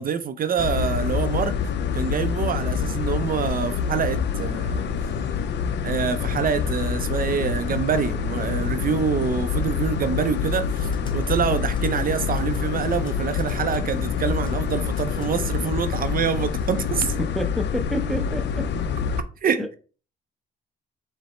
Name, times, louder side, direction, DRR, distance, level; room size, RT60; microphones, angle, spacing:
voice 1, 0.0-1.5 1.9-4.9 5.8-17.1 19.4-19.6, right 7 dB, 45° right, 0.4 m, -26 dB
sound 1, 0.6-19.2, left 6 dB, 60° left, 0.5 m, -26 dB
Typewriter, 10.4-11.4 11.7-11.9 12.4-14.0 14.4-14.6 14.9-15.3, left 2 dB, 25° left, 1.0 m, -51 dB
voice 2, 17.2-18.7 19.6-19.8, equal, ahead, 0.6 m, -29 dB
4.8 x 2.0 x 4.1 m
cardioid pair, 90°, 20 cm